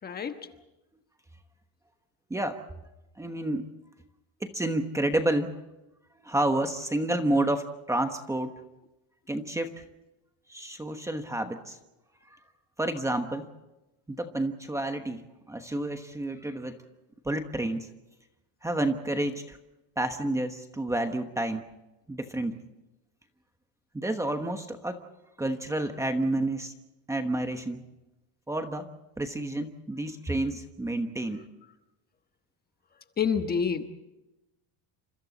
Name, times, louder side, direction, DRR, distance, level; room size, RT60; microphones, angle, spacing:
voice 1, 0.0-0.5 33.2-33.8, left 6 dB, 25° left, 7 dB, 1.2 m, -28 dB
voice 2, 2.3-2.6 3.2-3.7 4.4-5.6 6.2-8.5 9.3-9.8 10.5-11.8 12.3-12.4 12.8-13.5 14.1-16.8 17.2-17.9 18.6-19.6 20.0-21.6 22.1-22.6 23.9-25.0 25.4-26.7 27.1-27.8 28.5-28.9 29.2-31.4, right 1 dB, 10° right, 6 dB, 1.1 m, -30 dB
29.5 x 26.5 x 4.1 m, 0.97 s
cardioid pair, 170°, 39 cm